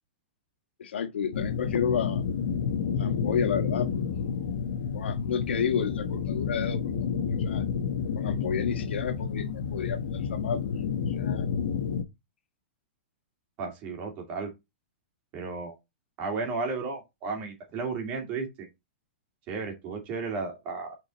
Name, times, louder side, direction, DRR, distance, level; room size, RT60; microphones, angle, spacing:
voice 1, 0.8-2.2 3.0-4.0 4.9-7.1 7.4-7.6 8.1-10.6 11.1-11.5, left 7 dB, 85° left, 1.6 m, -31 dB
sound 1, 1.3-12.0, left 6 dB, 60° left, 1.0 m, -30 dB
voice 2, 13.6-14.5 15.3-15.8 16.2-18.7 19.5-20.9, right 4 dB, 25° right, 2.4 m, -33 dB
6.1 x 4.5 x 4.0 m
supercardioid pair, 170°, 6 cm